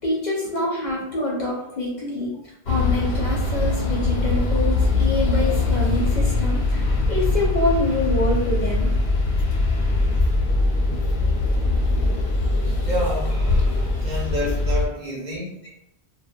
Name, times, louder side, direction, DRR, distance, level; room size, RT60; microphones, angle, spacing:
voice 1, 0.0-2.3 2.7-8.9, left 1 dB, 55° left, -4 dB, 0.6 m, -26 dB
sound 1, 2.7-14.9, left 3 dB, 90° left, 0.9 m, -23 dB
sound 2, 3.7-13.3, left 1 dB, 5° left, 0.4 m, -26 dB
voice 2, 12.6-15.6, equal, 50° right, -5 dB, 0.7 m, -29 dB
2.2 x 2.2 x 2.6 m, 0.80 s
omnidirectional pair, 1.1 m